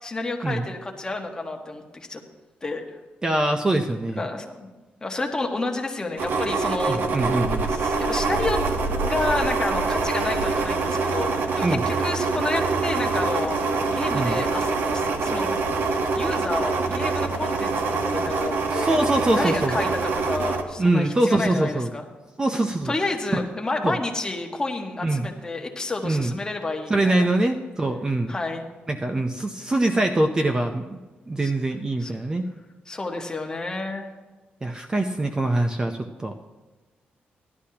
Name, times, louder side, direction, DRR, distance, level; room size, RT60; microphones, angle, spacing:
voice 1, 0.0-2.2 2.6-3.0 4.2-4.7 5.0-7.0 7.7-8.6 9.1-15.6 16.1-18.9 19.3-22.0 22.8-27.3 28.3-28.7 31.4-31.5 32.0-32.1 32.9-34.1, left 2 dB, 20° left, 2 dB, 1.3 m, -30 dB
voice 2, 3.2-4.3 6.9-7.7 11.6-11.8 14.1-14.4 18.7-19.8 20.8-21.9 22.4-22.9 23.3-23.4 23.8-24.0 25.0-25.3 26.0-26.4 26.9-28.3 28.9-31.0 31.3-32.4 34.6-36.3, right 2 dB, 20° right, 5 dB, 0.6 m, -23 dB
sound 1, 6.2-20.6, right 4 dB, 75° right, 1.1 m, -25 dB
16.5 x 11.5 x 2.9 m, 1.2 s
wide cardioid pair, 130°, 4 cm